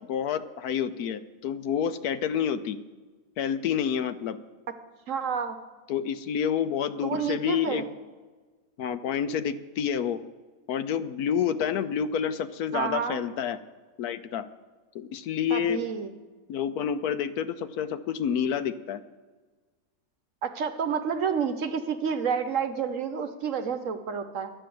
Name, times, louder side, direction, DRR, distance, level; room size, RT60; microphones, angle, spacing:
voice 1, 0.1-2.8 3.4-4.4 5.9-7.8 8.8-10.2 10.7-13.6 14.0-14.4 14.9-15.8 16.5-19.0, left 8 dB, 75° left, 12 dB, 1.1 m, -28 dB
voice 2, 5.1-5.6 7.0-7.9 12.7-13.2 15.5-16.1 20.4-24.5, right 6 dB, 60° right, 8 dB, 1.1 m, -29 dB
11.5 x 8.9 x 7.7 m, 1.4 s
omnidirectional pair, 1.7 m